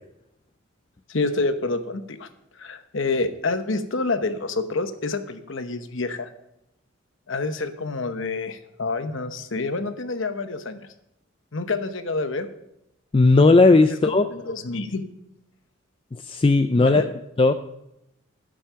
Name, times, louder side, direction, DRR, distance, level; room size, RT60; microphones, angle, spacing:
voice 1, 1.1-2.3 2.5-6.3 7.3-10.9 11.5-12.5 13.9-14.0 14.3-15.0 16.8-17.1, left 3 dB, 65° left, 9 dB, 1.0 m, -28 dB
voice 2, 13.1-14.2 16.1-17.0 17.4-17.5, left 3 dB, 25° left, 9 dB, 0.4 m, -16 dB
12.5 x 7.6 x 5.7 m, 0.85 s
head